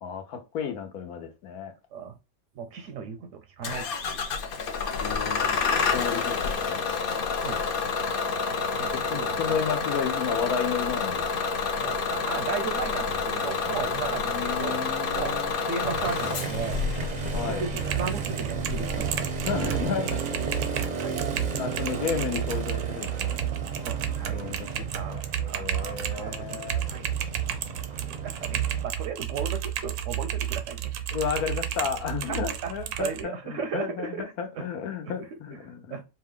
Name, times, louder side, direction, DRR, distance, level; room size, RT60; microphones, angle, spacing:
voice 1, 0.0-1.7 5.0-5.5 5.9-6.8 8.9-11.4 14.0-15.5 17.3-17.7 19.4-20.2 20.8-21.3 21.6-23.4 24.3-24.7 25.0-26.8 31.1-36.0, left 7 dB, 80° left, 1.3 m, -33 dB
voice 2, 2.6-4.3 7.4-7.6 8.8-9.6 11.8-14.9 15.1-16.9 17.4-19.3 19.6-19.7 21.0-21.3 21.9-22.1 23.8-24.4 24.9-25.7 26.2-26.6 26.9-27.1 27.5-27.6 27.9-30.9 31.3-31.4 32.3-34.7 35.0-35.4 35.9-36.0, right 6 dB, 65° right, 0.8 m, -36 dB
Bus / Engine starting, 3.6-19.9, left 5 dB, 55° left, 0.6 m, -29 dB
Motorcycle, 15.8-28.8, right 5 dB, 45° right, 0.5 m, -34 dB
Typing, 17.7-33.2, right 10 dB, 90° right, 1.2 m, -32 dB
5.0 x 2.3 x 3.6 m
omnidirectional pair, 1.6 m